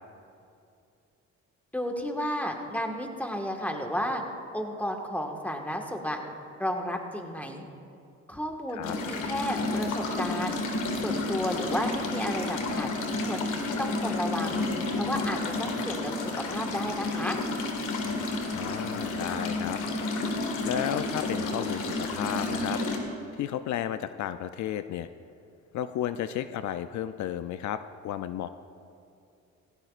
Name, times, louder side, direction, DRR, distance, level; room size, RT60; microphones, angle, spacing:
voice 1, 1.7-4.2 4.5-6.2 6.6-7.6 8.3-10.6 10.9-14.6 15.0-16.1 16.5-17.4, equal, 5° left, 2 dB, 1.5 m, -32 dB
sound 1, 8.8-23.0, left 2 dB, 85° left, 1.8 m, -31 dB
voice 2, 18.5-19.8 20.7-22.8 23.4-25.1 25.7-28.5, left 10 dB, 70° left, 11 dB, 0.5 m, -33 dB
17.5 x 16.5 x 2.5 m, 2.6 s
cardioid pair, 90°, 30 cm